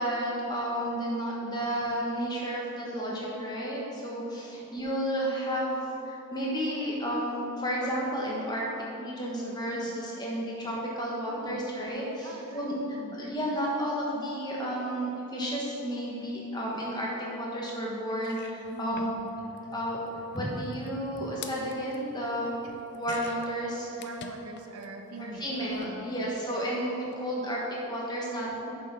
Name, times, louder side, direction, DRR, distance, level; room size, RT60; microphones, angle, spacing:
voice 1, 0.0-8.6 9.0-12.7 13.1-19.1 19.7-20.0 20.3-22.6 22.9-24.1 25.2-28.7, equal, 20° left, -4 dB, 1.3 m, -32 dB
voice 2, 11.3-11.6 12.2-13.2 18.7-19.2 22.6-22.8 24.0-26.1, right 2 dB, 85° right, 2 dB, 0.9 m, -43 dB
sound 1, 17.7-17.8 18.1-24.9 25.1-26.0 27.0-27.1 27.4-27.5, left 5 dB, 50° left, 0.4 m, -48 dB
6.7 x 6.0 x 5.1 m, 2.9 s
head